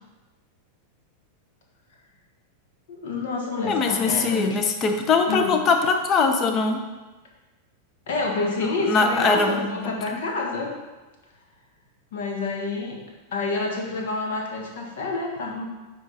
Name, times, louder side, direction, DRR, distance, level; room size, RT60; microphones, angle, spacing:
voice 1, 2.9-4.6 5.3-5.5 8.1-10.7 12.1-13.0 13.3-15.6, left 3 dB, 55° left, 1 dB, 1.5 m, -28 dB
voice 2, 3.7-6.8 8.9-9.9, left 4 dB, 30° left, 6 dB, 0.8 m, -22 dB
9.5 x 3.8 x 4.3 m, 1.2 s
figure-of-eight pair, 90°, 0 cm